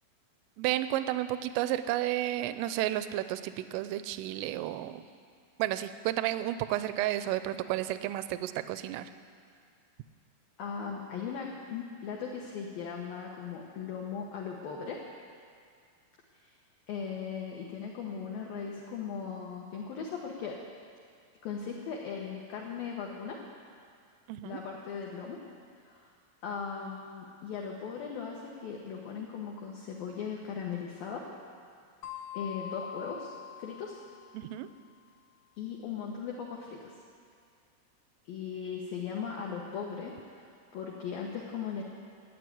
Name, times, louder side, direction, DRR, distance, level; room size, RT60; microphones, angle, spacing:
voice 1, 0.6-5.0 5.6-9.1 24.3-24.6 34.3-34.7, right 14 dB, 85° right, 12 dB, 3.0 m, -32 dB
voice 2, 10.6-15.0 16.9-20.6 21.4-23.4 24.4-25.4 25.8-26.1 26.4-31.3 32.3-34.0 35.6-37.0 38.3-41.8, left 6 dB, 90° left, -1 dB, 2.0 m, -38 dB
sound 1, 32.0-34.5, left 8 dB, 75° left, 3.4 m, -43 dB
13.5 x 9.0 x 9.5 m, 2.3 s
omnidirectional pair, 5.9 m